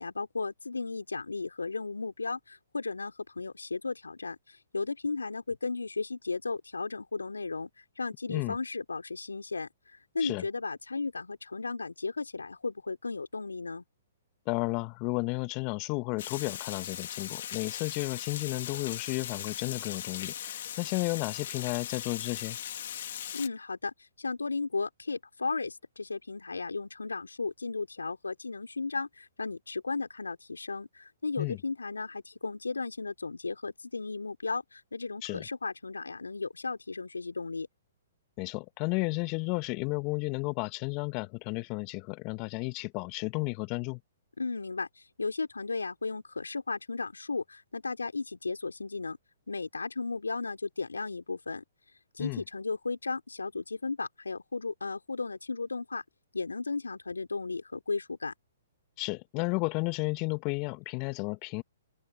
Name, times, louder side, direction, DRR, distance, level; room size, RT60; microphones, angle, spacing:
voice 1, 0.0-7.7 8.0-13.8 23.3-37.7 44.4-44.9 45.2-49.2 49.5-51.6 52.1-56.0 56.3-58.3, left 4 dB, 85° left, 4.0 m, -35 dB
voice 2, 14.5-22.6 31.4-31.6 35.2-35.5 38.4-44.0 52.2-52.4 59.0-61.6, left 28 dB, 35° left, 1.7 m, -33 dB
Water, 16.2-23.5, left 10 dB, 60° left, 2.9 m, -39 dB
open air
figure-of-eight pair, 120°, 0 cm